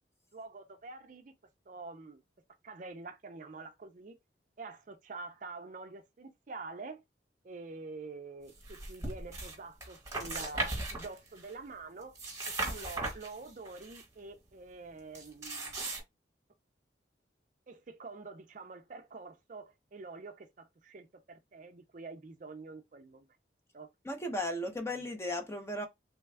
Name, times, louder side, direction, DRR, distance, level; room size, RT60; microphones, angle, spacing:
voice 1, 0.3-1.3 1.7-2.2 2.6-4.2 4.6-7.0 7.4-12.1 12.5-15.8 17.7-23.3 23.7-23.9, right 3 dB, 45° right, 0.5 m, -46 dB
sound 1, 8.6-9.6 9.8-11.5 12.0-14.0 15.1-16.0, right 2 dB, 15° right, 1.2 m, -38 dB
voice 2, 24.0-25.9, left 1 dB, 15° left, 0.7 m, -35 dB
3.3 x 2.2 x 3.2 m
head